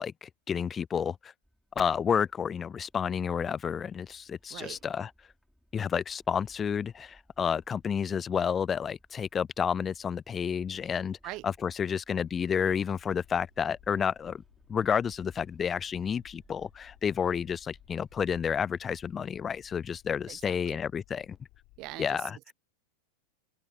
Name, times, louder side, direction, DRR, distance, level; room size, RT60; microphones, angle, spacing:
voice 1, 0.0-1.3 1.8-5.1 5.7-11.2 11.4-14.4 14.7-21.4 22.0-22.4, left 7 dB, 20° left, 0.4 m, -30 dB
sound 1, 1.4-19.9, equal, ahead, 5.6 m, -63 dB
sound 2, 12.1-22.0, left 23 dB, 40° left, 5.1 m, -59 dB
voice 2, 20.3-20.8 21.8-22.5, right 21 dB, 40° right, 0.8 m, -43 dB
open air
figure-of-eight pair, 90°, 0 cm